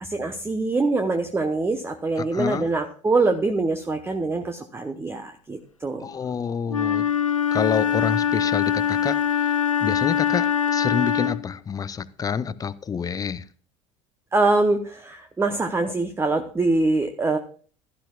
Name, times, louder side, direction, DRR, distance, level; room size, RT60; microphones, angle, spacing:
voice 1, 0.0-6.1 14.3-17.4, right 3 dB, 15° right, 0.9 m, -24 dB
voice 2, 2.2-2.7 6.0-7.1 7.5-9.5 9.8-13.4, left 6 dB, 20° left, 0.7 m, -28 dB
Wind instrument woodwind instrument, 6.7-11.5, left 8 dB, 90° left, 0.6 m, -23 dB
16.0 x 12.0 x 2.3 m
figure-of-eight pair, 70°, 16 cm